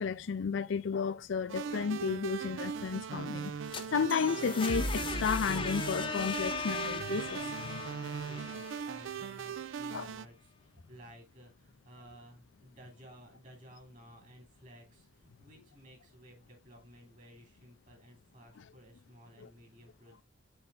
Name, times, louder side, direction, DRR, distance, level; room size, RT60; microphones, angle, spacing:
voice 1, 0.0-3.5 3.9-7.8 9.9-10.1 19.4-19.5, left 6 dB, 70° left, 0.4 m, -33 dB
sound 1, 1.5-10.2, right 7 dB, 75° right, 0.4 m, -40 dB
sound 2, 3.5-9.3, left 4 dB, 25° left, 0.7 m, -38 dB
voice 2, 8.2-20.2, equal, 40° right, 2.8 m, -55 dB
7.2 x 4.4 x 3.6 m
head